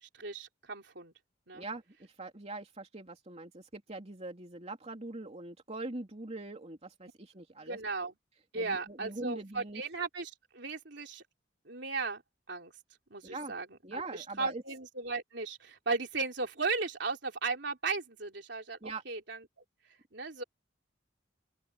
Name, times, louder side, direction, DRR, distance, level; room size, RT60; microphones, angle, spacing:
voice 1, 0.0-1.1 1.5-1.6 7.6-8.1 8.5-11.2 11.7-12.2 12.5-12.7 13.1-13.7 13.9-19.4 20.1-20.4, right 4 dB, 65° right, 3.7 m, -36 dB
voice 2, 1.5-7.8 8.5-9.8 13.2-13.5 13.8-14.6 18.8-19.0, right 2 dB, 35° right, 3.0 m, -42 dB
open air
head